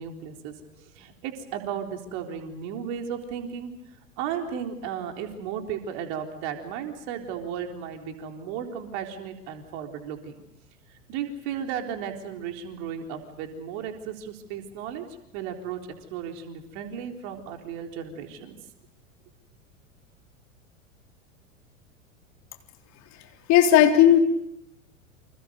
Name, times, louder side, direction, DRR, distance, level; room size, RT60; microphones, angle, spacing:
voice 1, 0.0-3.7 4.2-10.3 10.9-15.0 15.3-15.8 16.1-18.6, right 8 dB, 50° right, 4 dB, 3.9 m, -35 dB
voice 2, 23.5-24.2, left 10 dB, 40° left, 4 dB, 3.6 m, -15 dB
29.0 x 26.5 x 5.3 m, 0.81 s
figure-of-eight pair, 85°, 40 cm